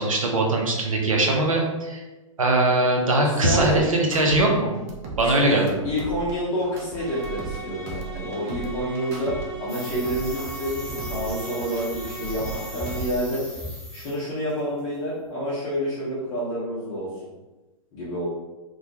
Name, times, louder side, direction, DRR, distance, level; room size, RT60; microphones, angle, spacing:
voice 1, 0.0-2.0 2.4-4.8 5.2-5.7, right 2 dB, 75° right, 0 dB, 0.6 m, -21 dB
voice 2, 3.2-3.9 5.2-5.6 5.8-10.8 11.1-13.4 13.9-17.1 17.9-18.3, equal, 35° left, -9 dB, 0.7 m, -28 dB
sound 1, 3.5-4.4 4.7-7.6 7.9-9.4 9.7-12.6 12.9-13.5, right 5 dB, 30° right, 0.4 m, -37 dB
sound 2, 6.9-13.0, right 3 dB, 45° right, 1.0 m, -39 dB
sound 3, 9.7-14.2 14.5-14.8, left 1 dB, ahead, 0.9 m, -38 dB
2.2 x 2.1 x 2.7 m, 1.1 s
figure-of-eight pair, 110°, 18 cm